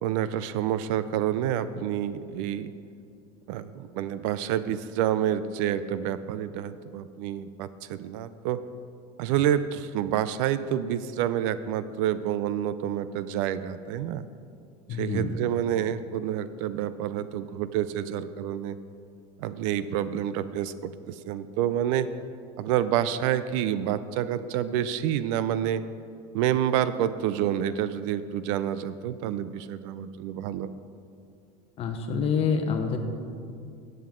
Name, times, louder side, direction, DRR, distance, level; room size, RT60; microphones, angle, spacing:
voice 1, 0.0-2.7 3.5-8.6 9.2-14.2 14.9-18.8 19.4-22.1 22.6-25.9 26.3-30.8, right 10 dB, 55° right, 14 dB, 0.5 m, -28 dB
voice 2, 14.9-15.4 31.8-33.0, left 5 dB, 30° left, 5 dB, 1.0 m, -27 dB
14.5 x 7.9 x 3.8 m, 2.4 s
supercardioid pair, 150°, 19 cm